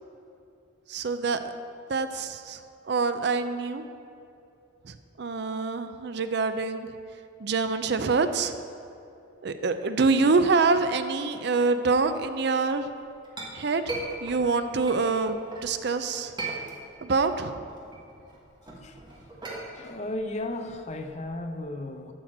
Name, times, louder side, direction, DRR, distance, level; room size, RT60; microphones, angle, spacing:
voice 1, 0.9-1.5 1.9-2.6 2.9-3.8 4.8-6.9 7.4-8.5 9.4-12.9 13.5-16.3 17.0-17.6, right 4 dB, 60° right, 10 dB, 0.5 m, -26 dB
Chink clink, 12.8-15.7 16.1-17.2 17.5-21.6, right 2 dB, 25° right, 1.5 m, -39 dB
voice 2, 19.7-22.1, left 1 dB, 35° left, 6 dB, 0.6 m, -34 dB
12.0 x 4.4 x 7.3 m, 2.6 s
head